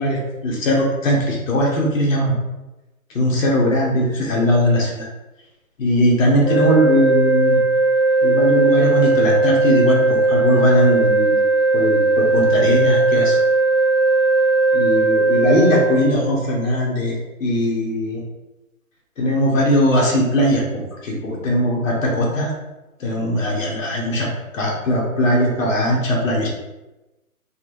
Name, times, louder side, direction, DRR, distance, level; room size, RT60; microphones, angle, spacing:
voice 1, 0.0-2.3 3.1-5.1 5.8-7.6 8.2-11.3 11.7-13.4 14.7-18.2 19.2-22.5 23.0-24.3 24.5-26.5, equal, 65° left, -2 dB, 1.1 m, -19 dB
sound 1, 6.4-16.1, right 3 dB, ahead, 0.5 m, -17 dB
3.0 x 3.0 x 2.5 m, 1.0 s
hypercardioid pair, 145°, 42 cm